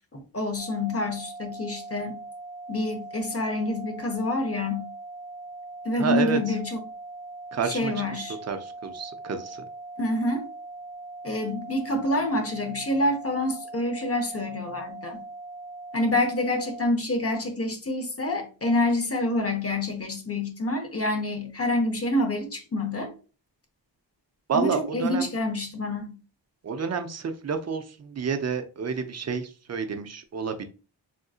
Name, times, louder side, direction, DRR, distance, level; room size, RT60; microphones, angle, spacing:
voice 1, 0.1-2.2 2.7-4.9 5.8-6.8 7.6-8.4 10.0-10.5 11.2-15.2 15.9-23.1 24.5-26.2, left 1 dB, 30° left, 4 dB, 0.7 m, -27 dB
sound 1, 0.6-16.9, right 2 dB, 90° right, 0.5 m, -41 dB
voice 2, 6.0-6.5 7.5-7.9 8.5-9.6 24.5-25.3 26.6-30.6, right 6 dB, 35° right, 7 dB, 0.5 m, -29 dB
3.6 x 2.6 x 2.4 m, 0.35 s
wide cardioid pair, 85°, 46 cm